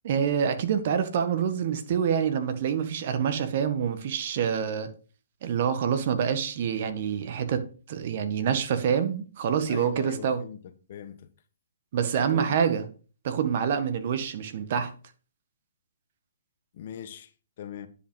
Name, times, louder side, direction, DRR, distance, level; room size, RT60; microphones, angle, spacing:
voice 1, 0.0-4.9 5.4-7.6 7.9-10.4 11.9-12.9 13.2-14.9, right 7 dB, 50° right, 1.5 m, -26 dB
voice 2, 9.7-10.6 10.9-11.3 12.3-12.6 14.0-14.1 16.7-17.3 17.6-17.9, left 9 dB, 50° left, 1.2 m, -40 dB
10.0 x 5.5 x 5.3 m
hypercardioid pair, 140°, 0 cm